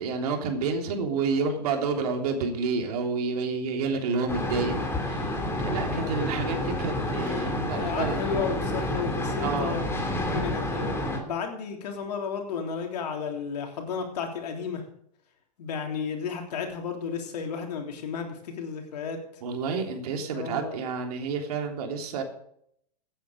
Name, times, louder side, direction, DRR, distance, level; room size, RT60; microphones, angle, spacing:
voice 1, 0.0-8.3 9.4-9.8 19.4-22.2, right 4 dB, 65° right, 3 dB, 3.5 m, -29 dB
sound 1, 4.3-11.2, left 1 dB, 10° left, 3.1 m, -29 dB
voice 2, 5.8-6.1 7.3-9.8 10.2-11.0 11.2-14.8 15.6-19.2 20.3-20.8, left 6 dB, 70° left, 3 dB, 3.4 m, -33 dB
16.0 x 9.3 x 5.2 m, 0.70 s
hypercardioid pair, 120°, 21 cm